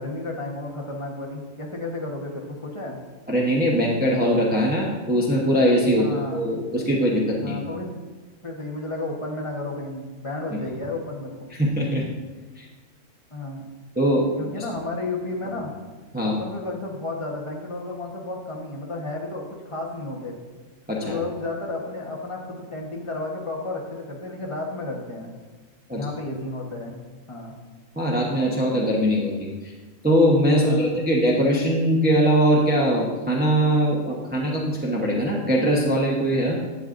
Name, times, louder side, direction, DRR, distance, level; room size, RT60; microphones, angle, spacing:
voice 1, 0.0-3.0 5.9-6.4 7.4-7.9 8.4-11.3 13.3-13.6 14.4-15.7 16.2-20.4 21.0-25.3 25.9-27.0 27.3-27.5 30.6-31.0, left 2 dB, 25° left, 0 dB, 1.2 m, -32 dB
voice 2, 3.3-7.5 10.5-10.6 11.6-12.0 12.6-12.7 14.0-14.3 16.1-16.4 20.9-21.2 25.9-26.0 28.0-29.7 30.0-36.6, equal, 10° right, -3 dB, 0.8 m, -21 dB
11.0 x 8.2 x 2.6 m, 1.3 s
omnidirectional pair, 1.4 m